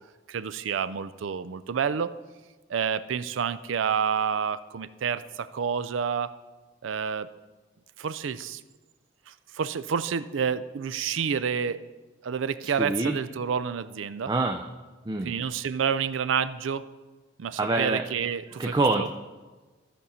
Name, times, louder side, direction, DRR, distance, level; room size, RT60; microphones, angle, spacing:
voice 1, 0.3-2.2 2.7-6.3 6.8-7.3 8.0-8.6 9.3-11.8 12.2-14.3 15.2-16.9 17.4-19.1, right 7 dB, 90° right, 14 dB, 0.4 m, -29 dB
voice 2, 12.8-13.2 14.3-14.6 15.1-15.3 17.6-18.0 18.6-19.1, right 2 dB, 20° right, 4 dB, 0.4 m, -25 dB
14.5 x 5.3 x 4.2 m, 1.3 s
head